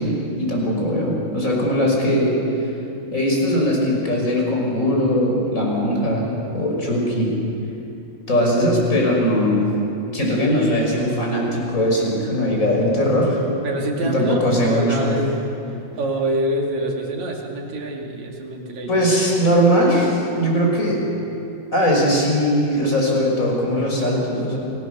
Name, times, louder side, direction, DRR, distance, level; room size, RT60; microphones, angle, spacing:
voice 1, 0.0-2.3 3.1-7.3 8.3-9.7 10.1-13.4 14.0-15.1 18.9-21.0 21.7-24.6, equal, 15° left, -1 dB, 5.3 m, -20 dB
voice 2, 13.6-15.4 16.0-19.1, right 1 dB, 45° right, 0 dB, 3.1 m, -25 dB
29.0 x 21.0 x 6.8 m, 2.9 s
omnidirectional pair, 6.0 m